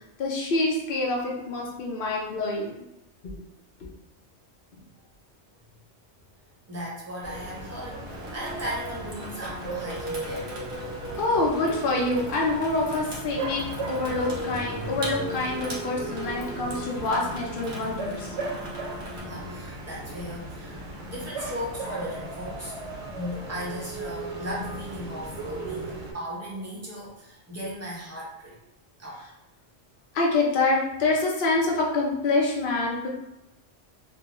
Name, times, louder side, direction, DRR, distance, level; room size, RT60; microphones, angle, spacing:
voice 1, 0.2-2.8 11.2-18.3 21.0-21.1 30.1-33.1, left 2 dB, 55° left, -2 dB, 0.7 m, -26 dB
voice 2, 6.7-10.6 19.3-20.8 21.1-22.8 23.1-28.6 29.0-29.2, equal, 15° right, -5 dB, 0.6 m, -37 dB
sound 1, 7.2-26.1, right 1 dB, 80° right, 1.0 m, -36 dB
Water tap faucet / Sink (filling or washing), 8.1-19.2, right 2 dB, 55° right, 0.7 m, -42 dB
2.4 x 2.3 x 2.9 m, 0.88 s
omnidirectional pair, 1.1 m